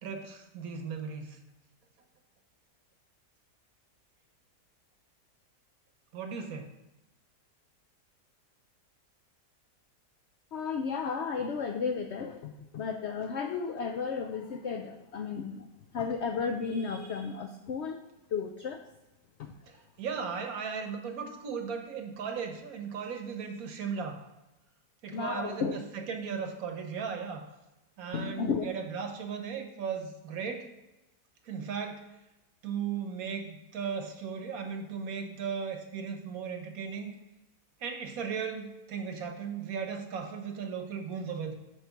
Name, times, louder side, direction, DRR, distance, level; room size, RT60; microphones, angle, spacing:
voice 1, 0.0-1.4 6.1-6.7 19.7-24.2 25.0-27.5 28.0-30.7 31.4-32.0 32.6-37.1 37.8-41.5, right 6 dB, 65° right, 5 dB, 1.2 m, -36 dB
voice 2, 10.5-15.7 15.9-18.0 18.3-18.8 19.4-19.5 25.1-25.8 28.1-28.6, left 5 dB, 80° left, 5 dB, 0.6 m, -33 dB
8.2 x 3.1 x 5.8 m, 0.99 s
omnidirectional pair, 1.7 m